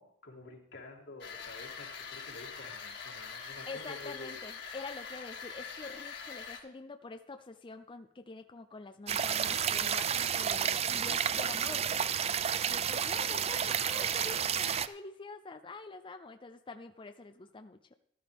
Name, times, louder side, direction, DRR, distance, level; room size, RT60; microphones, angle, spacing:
voice 1, 0.0-4.4 9.4-9.6, left 2 dB, 85° left, -1 dB, 2.8 m, -49 dB
sound 1, 1.2-6.6, left 6 dB, 65° left, 2.1 m, -44 dB
voice 2, 3.7-12.1 12.7-17.8, left 3 dB, 30° left, 7 dB, 0.5 m, -46 dB
sound 2, 9.1-14.9, right 8 dB, 35° right, 0.4 m, -31 dB
13.5 x 12.5 x 3.5 m, 0.75 s
head